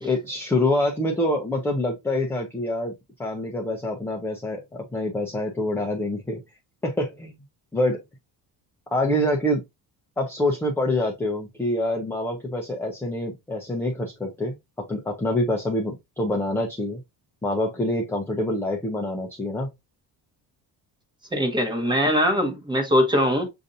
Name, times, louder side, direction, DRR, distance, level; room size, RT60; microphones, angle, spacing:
voice 1, 0.0-2.9 3.2-6.4 6.8-7.3 7.7-8.0 8.9-9.6 10.2-14.5 14.9-17.0 17.4-19.7, left 1 dB, 5° left, 0.5 m, -26 dB
voice 2, 21.3-23.5, equal, 10° right, 1.0 m, -22 dB
6.6 x 2.6 x 2.6 m
cardioid pair, 155°, 40 cm